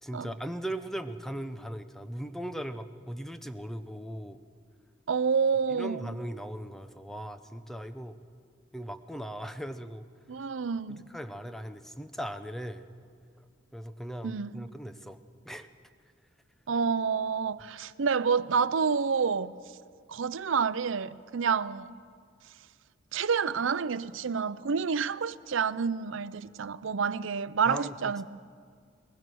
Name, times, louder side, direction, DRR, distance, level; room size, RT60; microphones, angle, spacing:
voice 1, 0.0-4.4 5.7-8.2 8.7-10.1 10.9-12.8 13.7-15.2 15.4-15.7 27.6-28.0, right 1 dB, ahead, 0.7 m, -38 dB
voice 2, 5.1-6.2 10.3-11.1 14.2-14.7 16.7-19.5 20.1-21.9 23.1-28.3, right 6 dB, 80° right, 0.6 m, -28 dB
22.5 x 20.5 x 6.3 m
head